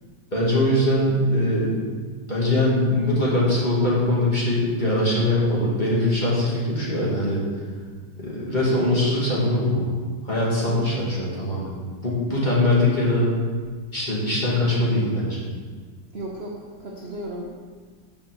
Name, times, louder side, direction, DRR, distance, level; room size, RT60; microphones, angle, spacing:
voice 1, 0.3-1.8 2.3-7.5 8.2-9.9 10.2-11.7 12.0-13.3 13.9-15.5, left 1 dB, 20° left, -6 dB, 2.1 m, -22 dB
voice 2, 10.6-11.1 16.1-17.5, right 1 dB, 45° right, -2 dB, 0.9 m, -35 dB
7.1 x 6.0 x 6.7 m, 1.5 s
omnidirectional pair, 2.2 m